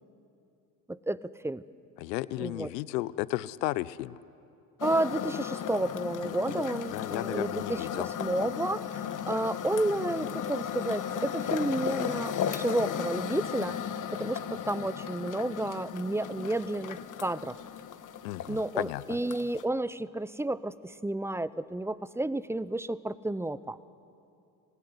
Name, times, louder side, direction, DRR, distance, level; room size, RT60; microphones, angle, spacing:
voice 1, 0.9-1.6 2.4-2.7 4.8-9.0 9.3-13.8 14.1-17.6 18.5-23.8, right 1 dB, 5° right, 17 dB, 0.6 m, -31 dB
voice 2, 2.0-4.2 6.9-8.1 18.2-19.0, left 17 dB, 80° left, 19 dB, 0.7 m, -33 dB
sound 1, 4.8-19.6, left 8 dB, 40° left, 1.3 m, -35 dB
26.0 x 17.0 x 9.7 m, 2.6 s
hypercardioid pair, 70°, 48 cm